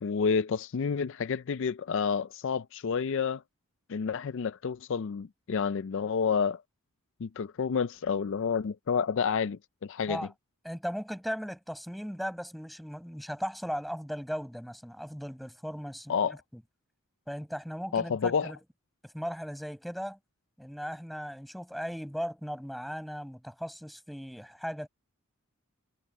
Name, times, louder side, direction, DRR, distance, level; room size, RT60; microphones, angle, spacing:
voice 1, 0.0-3.4 3.9-6.6 7.2-10.3 16.1-16.4 17.9-18.5, left 6 dB, 55° left, 0.4 m, -29 dB
voice 2, 10.6-16.6 17.3-18.6 19.0-20.2 20.6-24.9, equal, ahead, 5.6 m, -37 dB
head